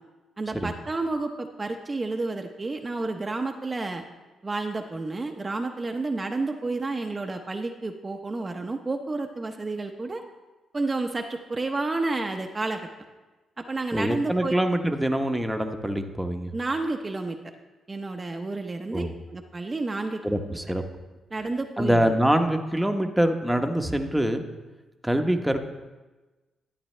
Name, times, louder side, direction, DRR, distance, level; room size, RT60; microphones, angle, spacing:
voice 1, 0.4-4.0 4.4-10.2 10.7-12.8 13.6-14.6 16.5-17.4 17.9-20.2 21.3-22.2, right 3 dB, 30° right, 4 dB, 0.8 m, -30 dB
voice 2, 13.9-16.5 18.9-19.1 20.2-20.8 21.8-24.4 25.0-25.6, right 1 dB, 5° right, 5 dB, 1.0 m, -24 dB
12.0 x 9.3 x 3.3 m, 1.2 s
supercardioid pair, 60°, 0 cm